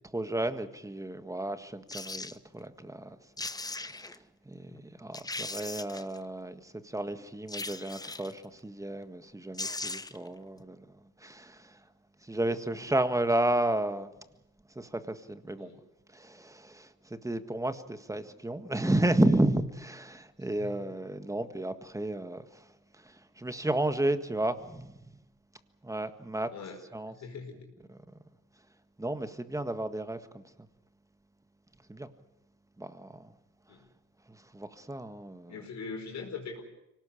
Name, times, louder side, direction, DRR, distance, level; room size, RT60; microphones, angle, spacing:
voice 1, 0.1-3.2 3.6-4.2 4.4-11.8 12.2-14.1 14.7-15.7 16.1-22.7 23.0-25.2 25.8-26.5 26.9-27.1 27.9-28.0 29.0-30.4 31.9-32.1 32.8-33.3 34.3-35.5, right 1 dB, 10° right, 1.7 m, -32 dB
sound 1, 1.9-2.4 3.1-3.2 3.4-4.2 4.7-4.8 5.1-6.2 7.5-8.4 9.2-9.3 9.5-10.3 10.6-10.7, left 2 dB, 15° left, 0.9 m, -38 dB
voice 2, 20.6-21.0 26.5-27.7 33.7-33.9 35.5-36.6, left 4 dB, 65° left, 5.2 m, -42 dB
24.5 x 18.5 x 8.4 m
cardioid pair, 90°, 30 cm